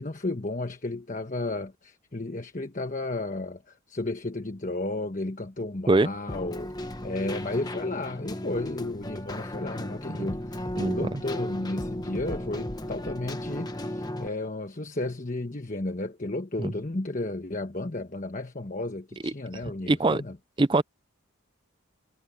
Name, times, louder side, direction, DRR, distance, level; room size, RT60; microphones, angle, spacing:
voice 1, 0.0-6.7 7.0-20.4, left 2 dB, 35° left, 1.2 m, -33 dB
Keyboard (musical), 6.3-14.3, left 1 dB, 20° left, 1.1 m, -35 dB
voice 2, 10.8-11.2 16.6-16.7 19.2-19.3 19.9-20.2 20.6-20.8, right 2 dB, 20° right, 0.4 m, -23 dB
head